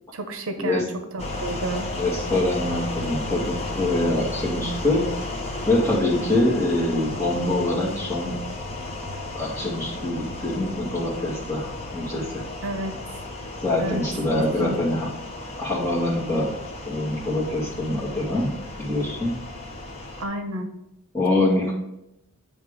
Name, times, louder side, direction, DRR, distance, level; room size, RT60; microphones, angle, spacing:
voice 1, 0.1-0.8 1.1-1.9 12.6-13.0 13.8-14.0 14.6-14.8 20.2-20.7, right 1 dB, 70° right, 6 dB, 0.8 m, -30 dB
sound 1, 1.2-20.2, left 2 dB, 30° left, 1.0 m, -34 dB
voice 2, 1.9-5.0 5.7-8.3 9.3-12.2 13.6-15.1 15.6-16.5 16.9-18.5 18.8-19.3 21.1-21.7, left 1 dB, 15° left, -6 dB, 2.0 m, -24 dB
9.3 x 3.3 x 5.0 m, 0.85 s
head